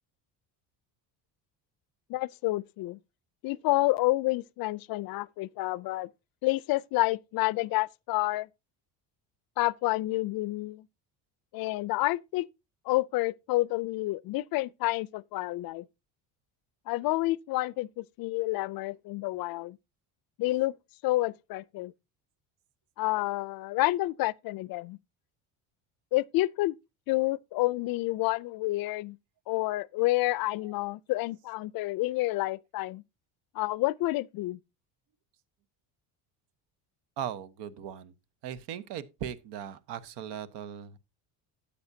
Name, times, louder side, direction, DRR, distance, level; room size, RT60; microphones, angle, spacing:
voice 1, 2.1-3.0 3.4-6.1 6.4-8.5 9.6-10.8 11.5-12.4 12.9-15.9 16.9-19.8 20.4-20.7 21.0-21.9 23.0-25.0 26.1-26.7 27.1-29.2 29.5-33.0 33.5-34.6, left 19 dB, 55° left, 0.5 m, -29 dB
voice 2, 37.2-38.1 38.4-41.0, right 9 dB, 75° right, 1.2 m, -38 dB
13.0 x 8.7 x 2.7 m
cardioid pair, 150°, 42 cm